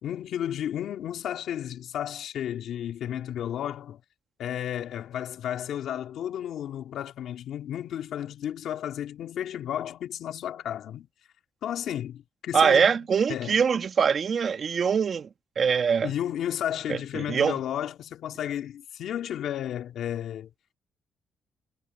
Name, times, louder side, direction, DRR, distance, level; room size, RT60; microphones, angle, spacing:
voice 1, 0.0-4.0 4.4-11.1 11.6-13.0 13.3-13.6 16.0-20.5, left 10 dB, 75° left, 2.8 m, -33 dB
voice 2, 12.5-15.3 15.6-16.1 16.9-17.6, right 6 dB, 50° right, 2.4 m, -23 dB
cardioid pair, 90°, 0 cm